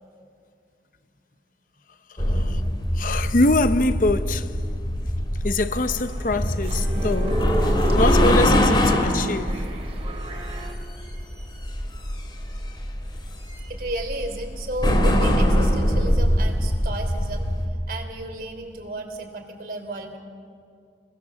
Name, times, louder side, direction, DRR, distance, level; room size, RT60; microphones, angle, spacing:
voice 1, 2.1-2.6 2.9-4.7 5.4-9.6, left 2 dB, 45° left, 0.8 m, -24 dB
sound 1, 2.2-17.7, equal, 25° left, 3.0 m, -23 dB
sound 2, 5.7-10.7, right 1 dB, 35° right, 2.6 m, -35 dB
voice 2, 13.7-17.5 17.9-20.2, right 1 dB, 50° right, 3.4 m, -33 dB
29.5 x 21.5 x 7.3 m
head